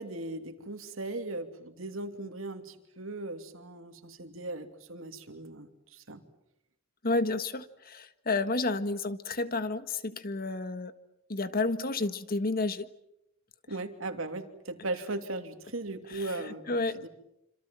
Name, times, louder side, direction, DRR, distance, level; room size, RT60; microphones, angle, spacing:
voice 1, 0.0-6.2 13.7-16.6 16.9-17.1, right 2 dB, 80° right, 7 dB, 3.0 m, -38 dB
voice 2, 7.0-10.9 11.3-12.8 16.1-16.3 16.7-17.0, left 3 dB, 45° left, 11 dB, 1.6 m, -30 dB
27.5 x 26.5 x 7.6 m, 0.82 s
head